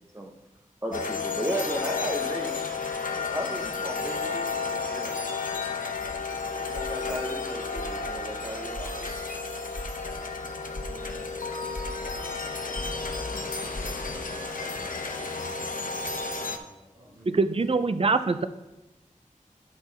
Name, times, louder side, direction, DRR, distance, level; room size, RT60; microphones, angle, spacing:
voice 1, 0.8-2.6 3.3-5.1 6.7-9.1, right 1 dB, 20° right, -1 dB, 0.9 m, -34 dB
sound 1, 0.9-16.6, left 4 dB, 85° left, 0.7 m, -32 dB
sound 2, 5.9-14.2, left 1 dB, 30° left, 1.6 m, -42 dB
voice 2, 10.7-11.3 12.3-14.3 16.2-18.1, equal, 70° right, -7 dB, 2.8 m, -52 dB
voice 3, 17.3-18.5, right 3 dB, 45° right, 11 dB, 0.5 m, -24 dB
9.8 x 6.0 x 4.1 m, 1.0 s
wide cardioid pair, 50°, 14 cm